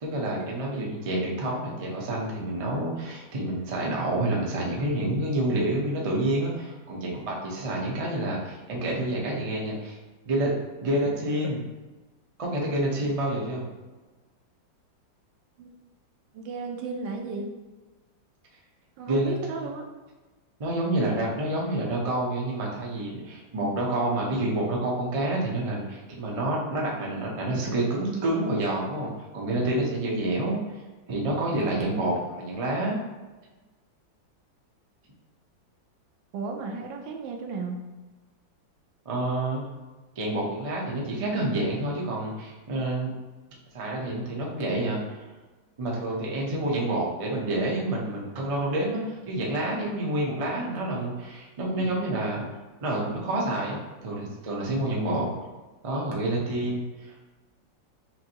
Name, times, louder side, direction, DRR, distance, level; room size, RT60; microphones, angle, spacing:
voice 1, 0.0-10.0 10.3-10.5 10.8-11.6 12.4-13.7 19.1-19.7 20.6-30.8 31.1-33.0 39.0-39.6 40.2-43.1 43.7-45.3 45.8-52.4 52.8-55.3 55.8-57.3, right 1 dB, 60° right, -3 dB, 0.3 m, -28 dB
voice 2, 16.3-17.5 19.0-19.8 36.3-37.8, right 4 dB, 80° right, 3 dB, 1.4 m, -34 dB
5.8 x 2.6 x 2.9 m, 1.2 s
omnidirectional pair, 2.0 m